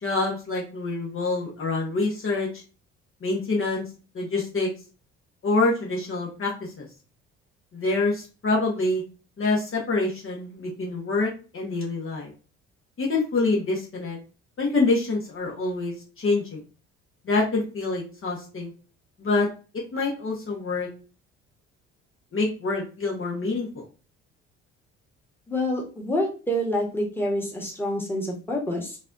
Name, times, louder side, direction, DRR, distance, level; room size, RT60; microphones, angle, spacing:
voice 1, 0.0-2.6 3.2-3.8 4.1-4.7 5.4-6.9 7.7-9.0 9.4-12.3 13.0-14.2 14.6-16.6 17.2-18.7 19.2-19.5 19.7-20.9 22.3-23.9, left 3 dB, 40° left, -2 dB, 1.2 m, -26 dB
voice 2, 25.5-29.0, left 1 dB, 5° left, -2 dB, 1.4 m, -27 dB
4.0 x 2.6 x 2.6 m, 0.34 s
hypercardioid pair, 60°, 34 cm